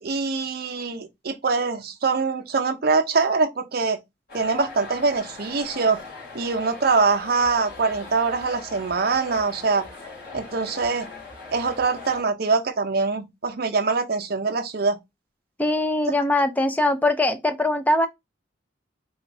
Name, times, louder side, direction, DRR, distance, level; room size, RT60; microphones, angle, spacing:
voice 1, 0.0-4.0 4.3-6.0 6.3-9.9 10.3-11.1 11.5-15.0, right 4 dB, 50° right, 0.6 m, -23 dB
sound 1, 4.3-12.2, left 3 dB, 50° left, 1.7 m, -40 dB
voice 2, 15.6-18.1, left 1 dB, 10° left, 0.4 m, -21 dB
3.4 x 2.4 x 4.1 m
head